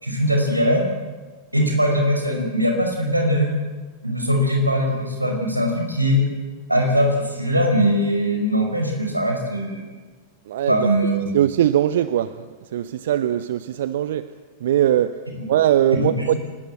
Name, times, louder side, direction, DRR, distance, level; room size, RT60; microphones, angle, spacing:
voice 1, 0.0-0.8 1.5-3.5 4.0-6.2 6.7-9.8 10.7-11.3 15.4-15.5 15.9-16.4, equal, 85° right, 5.3 m, -21 dB
voice 2, 10.5-10.9 11.3-14.3 14.6-16.4, right 11 dB, 60° right, 0.8 m, -21 dB
28.5 x 19.5 x 7.8 m
figure-of-eight pair, 90°, 0 cm